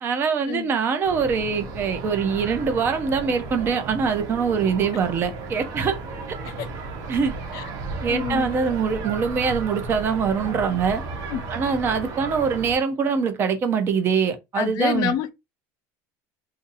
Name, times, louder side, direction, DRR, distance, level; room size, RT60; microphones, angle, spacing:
voice 1, 0.0-5.9 7.1-7.3 8.0-11.0 11.5-15.1, right 6 dB, 30° right, 0.6 m, -23 dB
sound 1, 1.0-12.7, right 3 dB, 55° right, 1.0 m, -34 dB
voice 2, 8.1-8.4 11.3-11.4 14.6-15.3, left 9 dB, 50° left, 0.5 m, -27 dB
2.6 x 2.6 x 4.0 m
cardioid pair, 165°, 8 cm